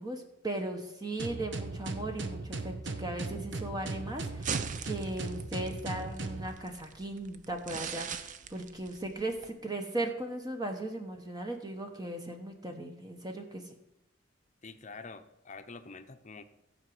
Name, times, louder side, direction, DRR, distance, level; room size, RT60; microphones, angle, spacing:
voice 1, 0.0-13.7, right 1 dB, 20° right, 4 dB, 1.0 m, -37 dB
sound 1, 1.2-6.5, right 3 dB, 70° right, 1.0 m, -38 dB
sound 2, 4.1-9.5, right 6 dB, 40° right, 0.6 m, -41 dB
voice 2, 14.6-16.4, left 4 dB, 40° left, 9 dB, 0.8 m, -46 dB
14.5 x 5.0 x 7.8 m, 0.88 s
head